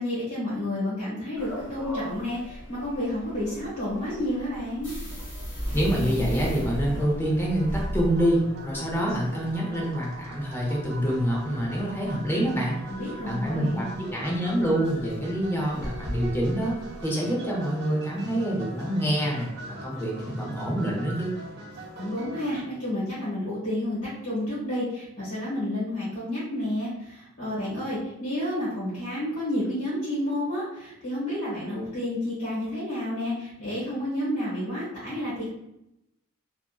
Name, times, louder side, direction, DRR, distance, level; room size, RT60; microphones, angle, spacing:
voice 1, 0.0-4.9 12.9-13.9 21.9-35.5, left 1 dB, 70° left, -9 dB, 1.0 m, -30 dB
sound 1, 1.3-17.0, equal, 35° left, 1.2 m, -37 dB
voice 2, 5.7-12.8 13.2-16.8 17.0-21.4, equal, 10° left, -4 dB, 0.7 m, -26 dB
sound 2, 6.8-22.6, right 1 dB, 55° right, 0.6 m, -42 dB
2.7 x 2.4 x 2.3 m, 0.85 s
head